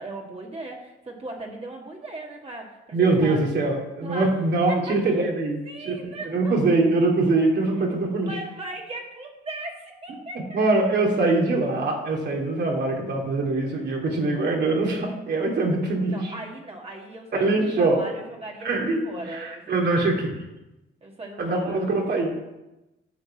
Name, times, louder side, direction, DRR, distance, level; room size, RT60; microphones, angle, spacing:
voice 1, 0.0-3.5 4.0-4.3 4.9-5.0 5.6-6.5 7.6-7.9 8.2-10.7 16.1-20.2 21.0-22.0, right 2 dB, 30° right, -1 dB, 2.0 m, -38 dB
voice 2, 2.9-8.3 10.3-16.3 17.3-18.0 18.6-19.0 19.3-20.4 21.4-22.3, right 2 dB, 60° right, 0 dB, 2.8 m, -23 dB
10.0 x 5.3 x 7.7 m, 0.99 s
cardioid pair, 90°, 20 cm